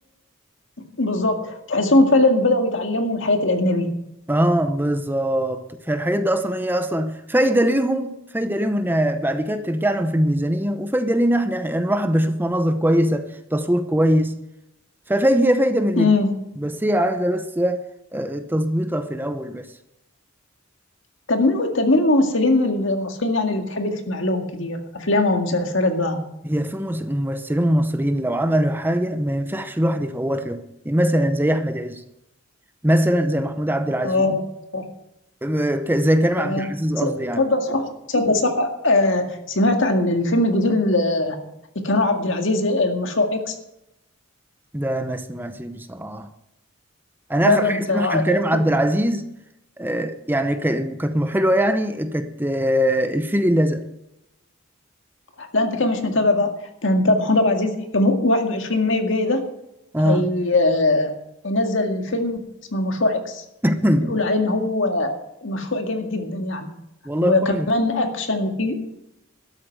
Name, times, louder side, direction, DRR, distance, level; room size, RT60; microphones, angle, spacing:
voice 1, 1.0-3.9 16.0-16.3 21.3-26.2 34.0-34.4 34.7-34.9 36.4-36.7 37.0-41.4 41.8-43.5 47.4-48.4 55.4-56.5 56.8-59.4 60.0-61.1 61.4-62.4 62.7-63.4 64.0-66.7 67.2-68.7, left 2 dB, 65° left, 2.0 m, -21 dB
voice 2, 4.3-14.4 15.1-16.1 16.6-17.9 18.1-19.7 26.4-32.0 32.8-34.3 35.4-37.4 44.7-46.3 47.3-49.3 49.8-53.8 59.9-60.3 63.6-64.1 67.1-67.7, equal, 10° right, 0.7 m, -22 dB
12.5 x 8.1 x 7.8 m
head